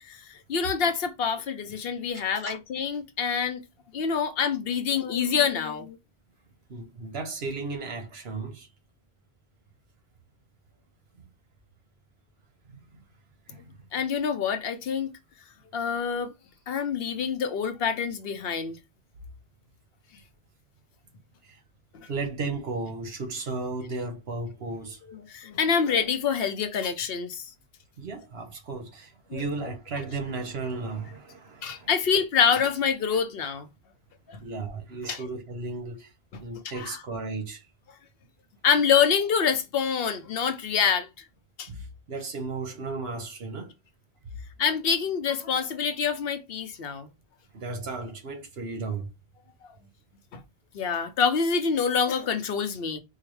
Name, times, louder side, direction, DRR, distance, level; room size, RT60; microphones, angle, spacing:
voice 1, 0.0-3.6 3.9-6.0 13.9-15.1 15.7-16.3 16.7-18.8 21.9-22.1 25.1-27.5 29.3-29.7 31.6-33.7 34.3-34.4 35.0-35.2 36.3-37.0 38.6-41.2 41.6-41.7 44.6-47.1 50.3-50.4 50.7-53.0, left 6 dB, 70° left, 0.9 m, -26 dB
voice 2, 2.1-2.6 6.7-8.7 12.9-13.0 13.5-13.7 21.5-21.6 22.1-25.0 28.0-31.9 34.4-36.1 36.4-37.6 41.7-43.7 47.5-49.1, right 3 dB, 80° right, 1.2 m, -35 dB
4.6 x 2.2 x 3.1 m
omnidirectional pair, 1.0 m